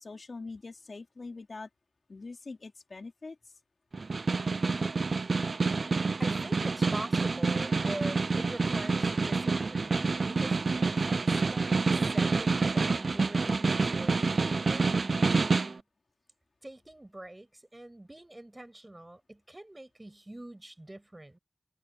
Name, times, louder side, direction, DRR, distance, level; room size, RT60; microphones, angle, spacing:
voice 1, 0.0-1.7 2.1-3.4, left 3 dB, 65° left, 4.1 m, -43 dB
Snare drum, 3.9-15.8, right 4 dB, 65° right, 0.5 m, -28 dB
voice 2, 6.2-15.8 16.6-21.4, right 1 dB, 25° right, 7.7 m, -44 dB
cardioid pair, 45°, 0 cm